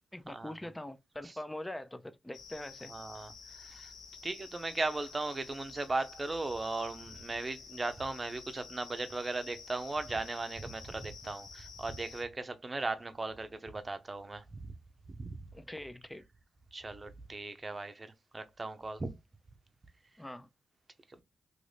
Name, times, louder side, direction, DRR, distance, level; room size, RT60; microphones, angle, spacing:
voice 1, 0.1-2.9 15.5-16.2 20.2-20.5, left 1 dB, 15° left, 0.5 m, -43 dB
sound 1, 2.3-12.2, left 5 dB, 80° left, 0.8 m, -51 dB
voice 2, 2.9-3.9 4.2-14.8 15.1-15.3 16.7-19.1 21.1-21.2, right 2 dB, 35° right, 0.6 m, -37 dB
3.0 x 2.6 x 3.3 m
cardioid pair, 55°, 0 cm